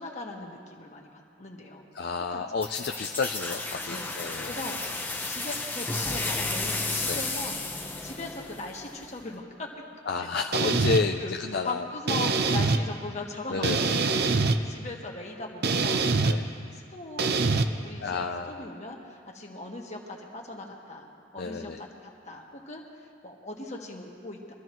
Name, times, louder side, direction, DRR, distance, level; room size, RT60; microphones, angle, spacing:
voice 1, 0.0-1.9 2.3-2.4 2.8-3.0 3.9-4.2 4.5-7.6 8.0-9.7 10.2-10.3 10.9-11.3 11.6-16.1 16.4-24.5, left 2 dB, 35° left, 0 dB, 1.6 m, -40 dB
voice 2, 1.9-4.6 7.1-7.2 10.1-11.9 13.5-14.0 16.2-16.5 18.0-18.7 21.4-21.8, left 4 dB, 55° left, 4 dB, 0.5 m, -31 dB
sound 1, 2.6-9.2, left 2 dB, 10° left, 0.8 m, -33 dB
sound 2, 10.5-11.0 12.1-12.8 13.6-14.6 15.6-16.4 17.2-17.6, right 3 dB, 55° right, 0.6 m, -24 dB
24.0 x 14.0 x 3.1 m, 2.3 s
head